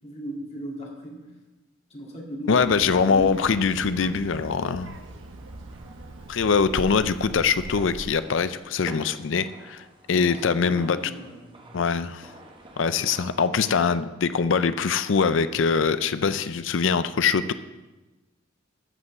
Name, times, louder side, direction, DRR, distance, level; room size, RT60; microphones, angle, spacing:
voice 1, 0.0-1.3 1.9-3.4 10.1-11.4, right 1 dB, 35° left, -1 dB, 2.0 m, -37 dB
voice 2, 2.5-4.9 6.3-11.0 11.7-12.3 12.8-17.5, left 5 dB, 75° left, 13 dB, 0.5 m, -23 dB
Child speech kid speaking, 2.6-8.2, right 2 dB, 75° right, 0.9 m, -40 dB
sound 1, 3.7-13.4, right 2 dB, 25° right, 1.3 m, -49 dB
14.0 x 5.4 x 7.0 m, 1.1 s
head